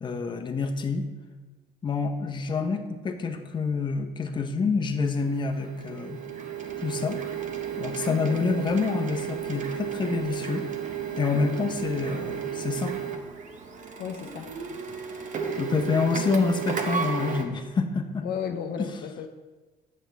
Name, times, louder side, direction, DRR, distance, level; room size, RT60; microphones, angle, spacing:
voice 1, 0.0-1.1 1.8-6.2 6.8-7.2 7.8-10.7 11.1-13.0 15.5-18.3 18.8-18.9, left 4 dB, 25° left, 5 dB, 0.7 m, -27 dB
Printer, 5.0-17.4, right 7 dB, 50° right, 0.9 m, -33 dB
voice 2, 8.0-8.4 14.0-15.0 18.2-19.3, left 7 dB, 65° left, 6 dB, 0.6 m, -35 dB
7.4 x 6.4 x 3.4 m, 1.3 s
cardioid pair, 110°, 17 cm